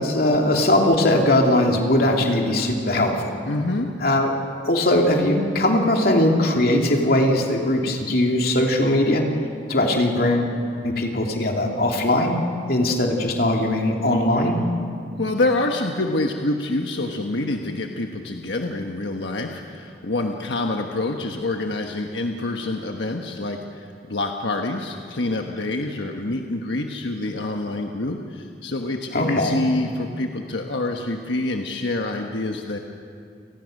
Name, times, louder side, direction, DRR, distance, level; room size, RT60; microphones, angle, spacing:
voice 1, 0.0-3.3 4.0-4.3 4.6-9.3 9.7-10.5 10.8-12.4 12.7-14.6 29.1-29.6, left 1 dB, 60° left, 1 dB, 2.8 m, -20 dB
voice 2, 3.4-3.9 15.2-32.8, left 2 dB, 85° left, 3 dB, 1.3 m, -26 dB
29.5 x 19.0 x 6.5 m, 2.4 s
head